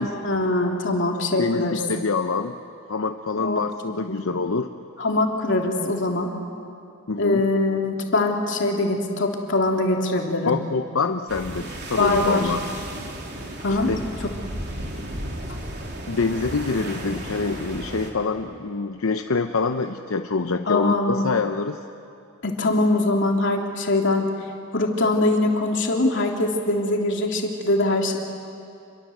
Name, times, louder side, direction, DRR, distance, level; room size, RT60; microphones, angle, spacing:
voice 1, 0.0-1.8 3.4-3.6 4.1-4.2 5.0-6.3 7.2-10.6 12.0-12.5 13.6-13.9 20.7-21.3 22.4-24.2 24.7-28.2, left 2 dB, 65° left, 1 dB, 3.1 m, -22 dB
voice 2, 1.4-2.6 2.9-4.7 7.1-7.4 10.5-12.6 13.9-14.1 16.1-21.8, left 4 dB, 85° left, 6 dB, 0.8 m, -25 dB
sound 1, 11.3-18.1, right 1 dB, 55° right, 3.4 m, -34 dB
27.5 x 23.0 x 7.9 m, 2.6 s
head